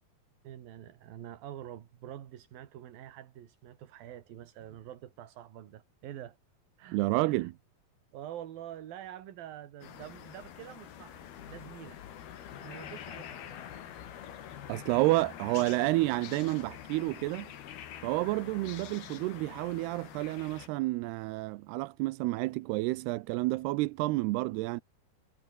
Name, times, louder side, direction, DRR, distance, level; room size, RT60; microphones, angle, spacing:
voice 1, 0.4-6.4 6.8-7.5 8.1-11.2 11.5-12.0 12.6-13.6, right 11 dB, 70° right, 3.5 m, -46 dB
voice 2, 6.9-7.5 14.7-17.5 18.0-24.8, right 20 dB, 85° right, 2.7 m, -30 dB
sound 1, 9.8-20.7, left 10 dB, 75° left, 4.2 m, -46 dB
omnidirectional pair, 4.6 m